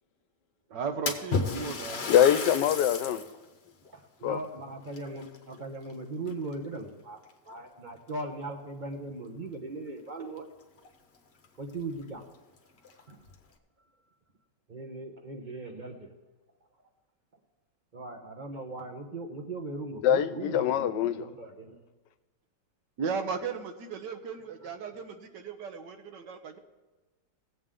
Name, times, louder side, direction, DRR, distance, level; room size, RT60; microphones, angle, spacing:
voice 1, 0.7-2.1 23.0-26.6, right 5 dB, 75° right, 1.6 m, -35 dB
Splash splatter, 1.1-3.4 3.8-3.9 4.9-5.9 6.3-6.7 7.5-7.6 8.1-8.2 10.4-10.5 10.8-10.9 11.4-11.5 11.9-12.0 12.8-13.3, left 4 dB, 45° left, 1.1 m, -33 dB
voice 2, 2.1-3.2 4.2-4.4 20.0-21.3, left 10 dB, 80° left, 1.2 m, -24 dB
voice 3, 3.9-7.2 7.5-10.5 11.6-12.2 13.1-13.2 14.7-16.0 17.9-21.8, right 2 dB, 35° right, 0.9 m, -39 dB
18.0 x 8.0 x 3.7 m
omnidirectional pair, 1.9 m